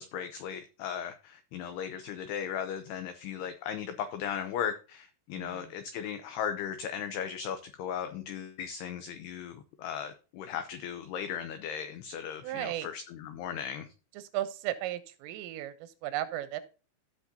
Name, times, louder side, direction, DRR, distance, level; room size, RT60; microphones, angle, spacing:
voice 1, 0.0-13.9, left 8 dB, 90° left, 2.3 m, -37 dB
voice 2, 5.4-5.7 12.4-12.9 14.2-16.6, right 13 dB, 85° right, 3.4 m, -35 dB
16.5 x 6.1 x 2.8 m
omnidirectional pair, 5.7 m